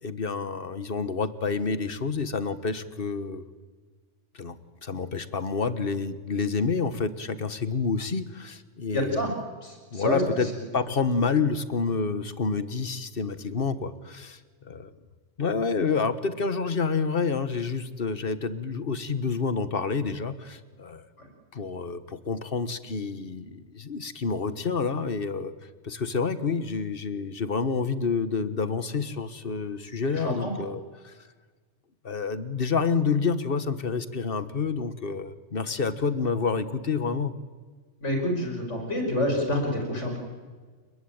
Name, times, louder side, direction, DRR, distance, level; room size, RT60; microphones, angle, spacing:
voice 1, 0.0-3.4 4.3-9.3 9.9-14.4 14.6-14.9 15.4-21.0 21.5-25.5 25.8-31.1 32.0-37.3, left 5 dB, 50° left, 12 dB, 1.6 m, -28 dB
voice 2, 8.9-9.3 9.6-10.2 30.2-30.5 38.0-40.2, left 1 dB, 80° left, 3 dB, 5.5 m, -27 dB
30.0 x 19.5 x 8.9 m, 1.4 s
omnidirectional pair, 1.2 m